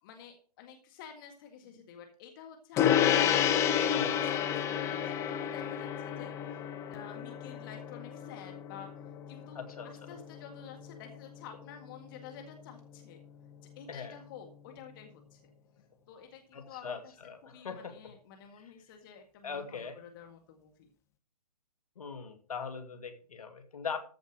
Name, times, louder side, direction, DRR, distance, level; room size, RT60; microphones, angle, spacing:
voice 1, 0.0-6.6 6.9-13.2 13.8-15.4 16.1-17.1 17.4-20.9, left 7 dB, 35° left, 4 dB, 1.8 m, -50 dB
Gong, 2.8-12.5, left 9 dB, 15° left, 0.9 m, -31 dB
voice 2, 3.9-4.3 9.5-10.1 13.9-14.2 16.5-18.0 19.4-20.0 22.0-24.0, left 5 dB, 65° left, 7 dB, 2.4 m, -41 dB
14.0 x 5.2 x 6.4 m, 0.42 s
figure-of-eight pair, 135°, 20 cm